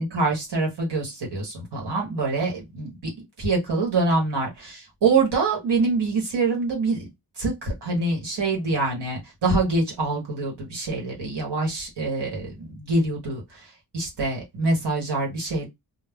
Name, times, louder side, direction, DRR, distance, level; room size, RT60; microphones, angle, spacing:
voice 1, 0.0-2.9 3.4-7.1 7.4-13.7 13.9-15.7, right 3 dB, 75° right, 1.2 m, -25 dB
2.4 x 2.0 x 3.4 m
wide cardioid pair, 125°, 41 cm